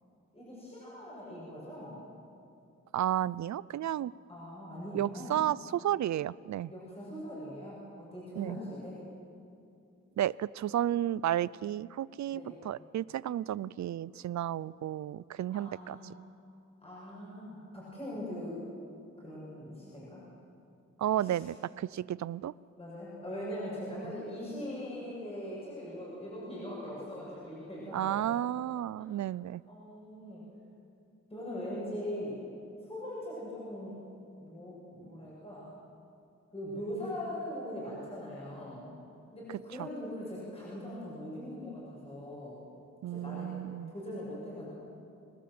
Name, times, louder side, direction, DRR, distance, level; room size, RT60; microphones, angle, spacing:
voice 1, 0.3-2.0 4.3-5.3 6.7-9.0 12.3-12.6 15.5-16.1 16.8-18.6 19.2-20.2 21.2-21.4 22.8-28.3 29.7-30.4 31.3-32.4 32.8-34.0 34.4-35.7 36.5-38.8 39.3-42.5 43.0-43.5 43.9-44.7, left 1 dB, 20° left, -7 dB, 6.8 m, -41 dB
voice 2, 2.9-4.1 4.9-6.7 8.4-8.6 10.2-16.0 21.0-22.5 27.9-29.6 39.8-39.9 43.0-43.9, right 12 dB, 70° right, 21 dB, 0.5 m, -32 dB
25.5 x 19.0 x 7.8 m, 2.6 s
wide cardioid pair, 165°, 29 cm